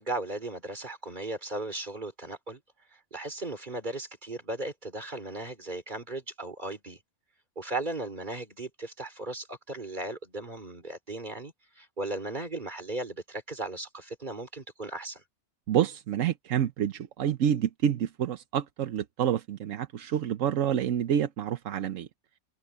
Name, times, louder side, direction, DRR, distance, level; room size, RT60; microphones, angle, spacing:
voice 1, 0.0-2.6 2.9-7.0 7.6-15.2, right 2 dB, 35° right, 3.6 m, -36 dB
voice 2, 15.7-22.1, right 9 dB, 85° right, 1.2 m, -28 dB
omnidirectional pair, 1.3 m